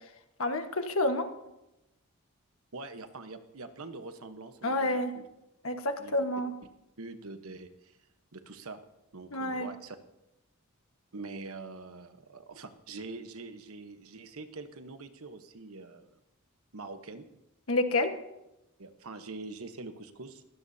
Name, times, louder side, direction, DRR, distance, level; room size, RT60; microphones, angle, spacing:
voice 1, 0.4-1.3 4.6-5.1 5.6-6.5 9.3-9.7 17.7-18.1, left 2 dB, 70° left, 6 dB, 1.4 m, -29 dB
voice 2, 2.7-5.3 6.0-6.2 7.0-8.0 8.3-8.8 9.1-10.0 11.1-16.2 16.7-17.2 18.8-20.4, right 3 dB, 75° right, 8 dB, 1.1 m, -44 dB
22.0 x 16.5 x 2.8 m, 0.90 s
head